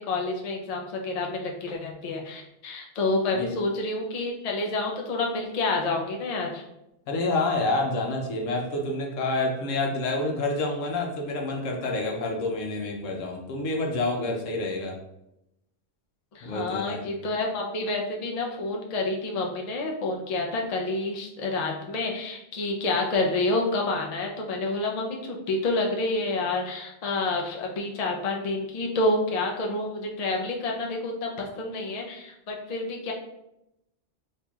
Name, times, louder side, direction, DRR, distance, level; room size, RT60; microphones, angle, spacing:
voice 1, 0.0-6.6 16.3-33.1, left 2 dB, 45° left, 0 dB, 0.5 m, -28 dB
voice 2, 7.1-15.0 16.4-17.0, left 2 dB, 85° left, 1 dB, 1.1 m, -28 dB
4.3 x 2.9 x 2.3 m, 0.86 s
omnidirectional pair, 1.3 m